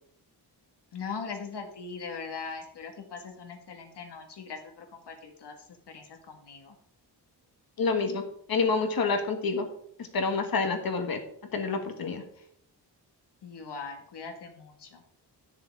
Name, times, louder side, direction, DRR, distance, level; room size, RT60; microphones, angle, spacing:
voice 1, 0.9-6.7 12.3-12.5 13.4-15.0, left 5 dB, 75° left, 3 dB, 2.0 m, -41 dB
voice 2, 7.8-8.2 8.5-9.7 10.1-11.2 11.5-12.2, left 4 dB, 60° left, 5 dB, 1.7 m, -27 dB
10.5 x 6.6 x 4.8 m, 0.66 s
wide cardioid pair, 175°, 41 cm